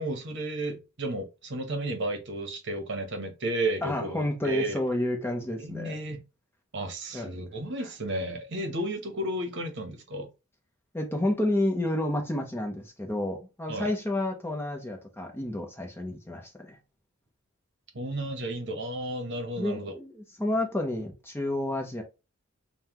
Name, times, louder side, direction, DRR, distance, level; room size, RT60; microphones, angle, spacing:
voice 1, 0.0-4.8 5.6-6.2 6.7-10.3 13.7-13.9 17.9-19.9, right 1 dB, 55° right, 1.0 m, -33 dB
voice 2, 3.8-6.0 7.1-7.3 10.9-16.8 19.6-22.0, left 1 dB, 10° left, 0.7 m, -30 dB
5.5 x 2.2 x 2.9 m
head